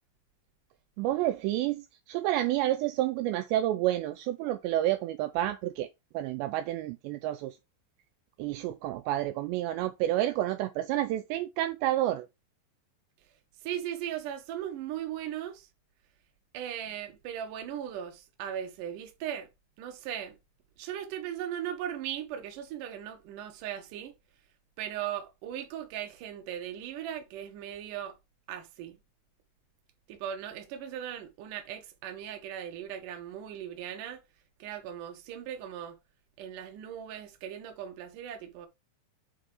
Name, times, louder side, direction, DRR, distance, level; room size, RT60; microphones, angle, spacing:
voice 1, 1.0-5.9 6.1-7.6 8.4-12.3, right 14 dB, 85° right, 2.6 m, -29 dB
voice 2, 13.6-15.7 16.5-19.5 19.8-20.4 20.8-24.1 24.8-28.2 28.5-29.0 30.1-34.2 34.6-36.0 36.4-38.7, right 10 dB, 65° right, 2.2 m, -38 dB
8.0 x 4.1 x 4.8 m
omnidirectional pair, 5.4 m